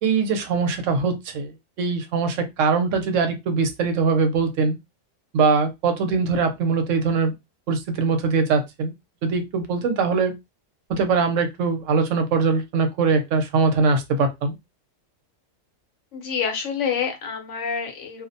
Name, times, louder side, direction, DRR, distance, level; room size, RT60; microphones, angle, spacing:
voice 1, 0.0-1.5 1.8-4.8 5.3-7.3 7.7-8.9 9.2-10.3 10.9-14.5, right 4 dB, 75° right, 0.9 m, -22 dB
voice 2, 16.1-18.3, left 6 dB, 70° left, 1.0 m, -27 dB
2.4 x 2.0 x 2.6 m
omnidirectional pair, 1.4 m